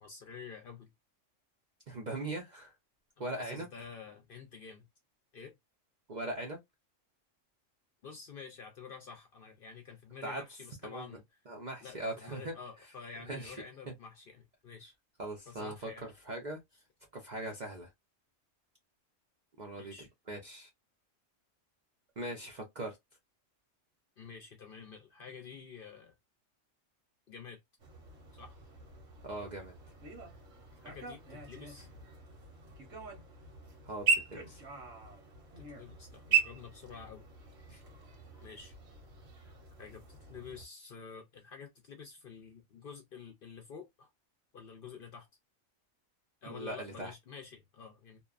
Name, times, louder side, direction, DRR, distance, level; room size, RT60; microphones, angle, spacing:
voice 1, 0.0-0.9 3.2-4.9 5.3-5.6 8.0-11.2 11.8-14.9 15.5-16.1 19.8-20.1 24.2-26.1 27.3-27.6 28.3-28.5 30.8-31.9 35.7-37.3 38.1-38.7 39.8-44.1 44.5-45.3 46.4-48.2, left 6 dB, 55° left, 0.6 m, -49 dB
voice 2, 1.9-2.7 3.2-3.7 6.1-6.6 10.2-10.4 10.8-11.1 11.5-12.5 13.3-13.6 15.2-16.6 17.1-17.9 19.6-19.9 20.3-20.7 22.2-23.0 29.2-29.7 33.9-34.6 37.7-37.8 46.5-47.1, right 2 dB, 50° right, 0.5 m, -40 dB
sound 1, 27.8-40.6, right 6 dB, 75° right, 1.3 m, -38 dB
2.8 x 2.1 x 2.3 m
omnidirectional pair, 1.3 m